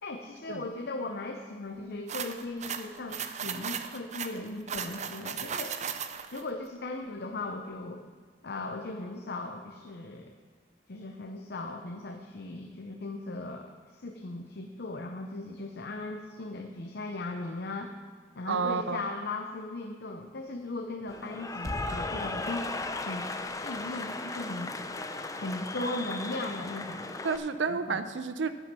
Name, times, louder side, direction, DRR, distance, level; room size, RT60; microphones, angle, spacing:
voice 1, 0.0-5.8 6.3-8.0 8.4-10.3 10.9-18.0 18.4-23.3 23.6-24.7 25.4-27.1 27.7-28.0, left 2 dB, 60° left, 4 dB, 0.7 m, -38 dB
sound 1, 2.1-6.4, right 7 dB, 40° right, 0.6 m, -36 dB
voice 2, 18.5-19.0 27.2-28.5, right 5 dB, 85° right, 11 dB, 0.6 m, -30 dB
Cheering / Applause, 21.1-27.4, left 2 dB, 20° left, 0.6 m, -36 dB
9.7 x 9.1 x 6.1 m, 1.5 s
head